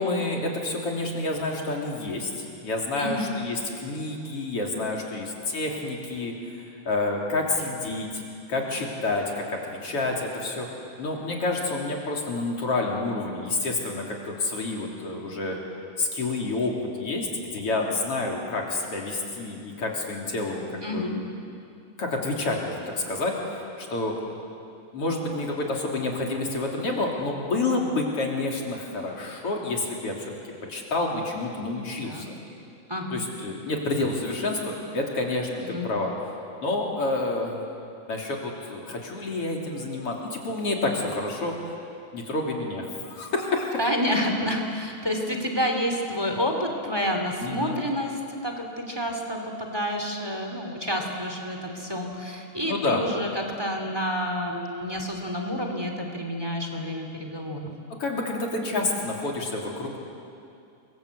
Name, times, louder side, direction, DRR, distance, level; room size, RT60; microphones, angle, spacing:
voice 1, 0.0-8.2 8.5-10.7 11.0-15.6 16.0-21.6 22.0-24.2 24.9-30.3 30.7-32.4 33.1-36.1 36.6-37.6 38.1-41.5 42.1-43.7 47.4-47.8 52.6-53.0 58.0-60.0, left 2 dB, 40° left, -1 dB, 3.9 m, -29 dB
voice 2, 20.8-21.1 32.0-32.3 32.9-33.2 35.6-35.9 43.8-57.7, equal, 10° right, 3 dB, 2.2 m, -29 dB
28.5 x 22.5 x 8.3 m, 2.5 s
omnidirectional pair, 4.0 m